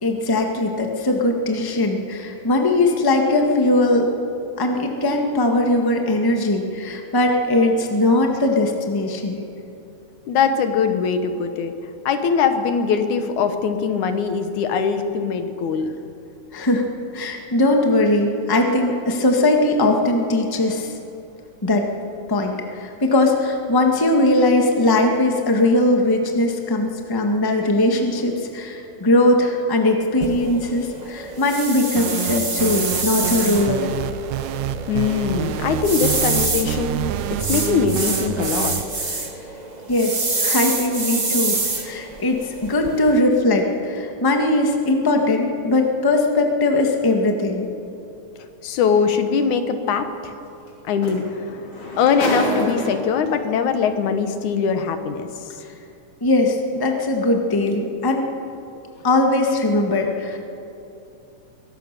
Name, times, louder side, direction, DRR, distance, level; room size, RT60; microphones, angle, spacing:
voice 1, 0.0-4.1 4.6-9.4 16.5-16.8 17.1-20.9 21.6-21.9 22.3-33.9 39.9-47.7 56.2-58.3 59.0-60.4, left 2 dB, 10° left, 2 dB, 1.1 m, -20 dB
voice 2, 10.3-11.7 12.1-15.9 34.9-38.8 48.6-50.3 50.9-51.6 52.0-55.3, left 6 dB, 80° left, 8 dB, 2.6 m, -21 dB
sound 1, 30.2-43.2, right 3 dB, 30° right, 0.7 m, -27 dB
sound 2, 32.0-38.8, right 11 dB, 75° right, 2.0 m, -27 dB
sound 3, 48.8-49.0 50.7-50.8 51.0-53.3 54.2-54.3, left 1 dB, 40° left, 4.2 m, -27 dB
23.0 x 17.5 x 6.8 m, 2.8 s
omnidirectional pair, 3.4 m